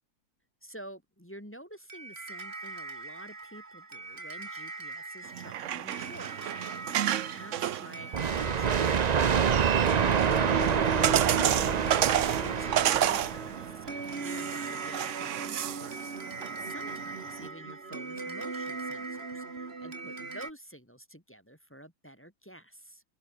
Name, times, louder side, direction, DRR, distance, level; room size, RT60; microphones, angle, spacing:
voice 1, 0.6-6.5 7.0-9.6 10.6-23.0, equal, 5° left, 2.7 m, -49 dB
sound 1, 1.9-20.5, right 3 dB, 40° right, 2.5 m, -39 dB
sound 2, 5.3-17.5, right 11 dB, 60° right, 0.9 m, -32 dB
sound 3, 8.1-13.7, right 7 dB, 85° right, 0.3 m, -27 dB
omnidirectional pair, 1.7 m